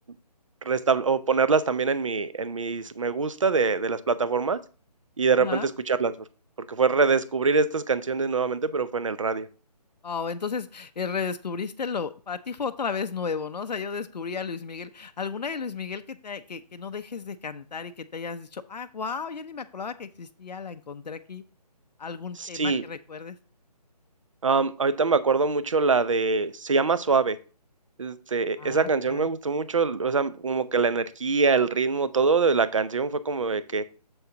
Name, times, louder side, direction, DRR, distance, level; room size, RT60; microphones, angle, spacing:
voice 1, 0.7-4.6 5.2-6.1 6.7-9.5 22.4-22.8 24.4-27.4 28.0-33.8, right 4 dB, 50° right, 0.6 m, -24 dB
voice 2, 5.4-5.7 10.0-21.4 22.0-23.4 28.6-29.3, left 5 dB, 80° left, 0.7 m, -34 dB
7.8 x 7.1 x 2.8 m
hypercardioid pair, 175°, 21 cm